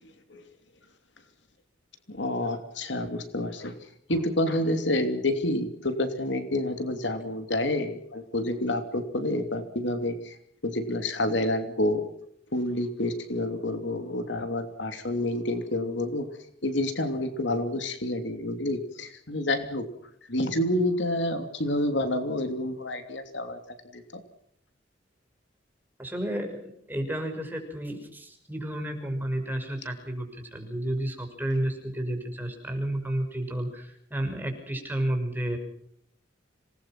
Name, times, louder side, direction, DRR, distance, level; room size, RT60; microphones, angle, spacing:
voice 1, 2.1-3.8 4.1-10.4 10.6-12.0 12.5-16.3 16.6-19.8 20.3-23.6 23.9-24.2, left 1 dB, 65° left, 8 dB, 3.0 m, -28 dB
voice 2, 26.0-35.6, right 1 dB, 10° right, 4 dB, 6.1 m, -31 dB
27.0 x 20.5 x 6.1 m, 0.69 s
head